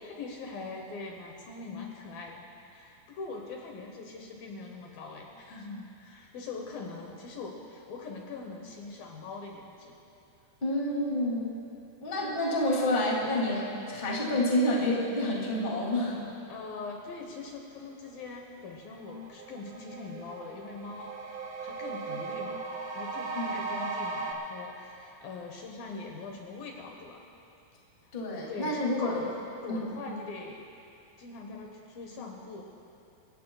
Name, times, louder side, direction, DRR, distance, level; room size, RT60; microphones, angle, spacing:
voice 1, 0.0-2.4 2.7-10.0 16.5-22.6 23.0-27.2 28.0-28.1 28.5-29.4 29.6-30.6 31.2-32.6, left 4 dB, 70° left, 1 dB, 2.6 m, -42 dB
voice 2, 10.6-11.6 12.0-16.2 23.3-23.6 28.1-29.2 29.7-29.9, left 1 dB, 20° left, -3 dB, 1.7 m, -28 dB
sound 1, 18.6-18.7 19.0-24.3, right 4 dB, 70° right, 1.9 m, -37 dB
29.5 x 16.0 x 2.3 m, 2.8 s
omnidirectional pair, 4.7 m